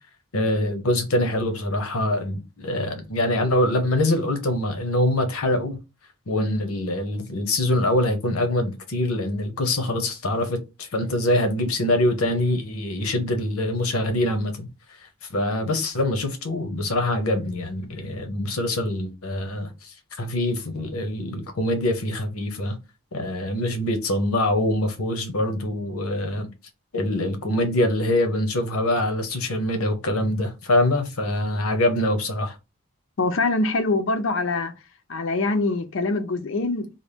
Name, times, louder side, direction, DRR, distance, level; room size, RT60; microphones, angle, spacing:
voice 1, 0.3-5.8 6.3-14.7 15.3-22.8 23.1-26.5 26.9-32.6, left 1 dB, 90° left, 0.9 m, -24 dB
voice 2, 33.2-34.7 35.1-36.9, left 3 dB, 60° left, 0.5 m, -24 dB
4.0 x 2.1 x 3.4 m
head